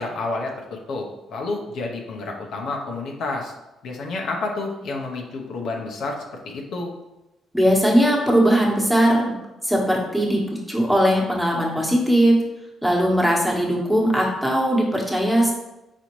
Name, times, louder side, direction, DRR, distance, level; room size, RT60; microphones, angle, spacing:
voice 1, 0.0-3.5 3.8-6.9, left 3 dB, 75° left, 1 dB, 0.8 m, -30 dB
voice 2, 7.5-9.2 9.6-10.4 10.7-12.4 12.8-15.5, equal, 5° right, -2 dB, 1.2 m, -19 dB
4.2 x 4.1 x 3.1 m, 0.98 s
cardioid pair, 90°, 0 cm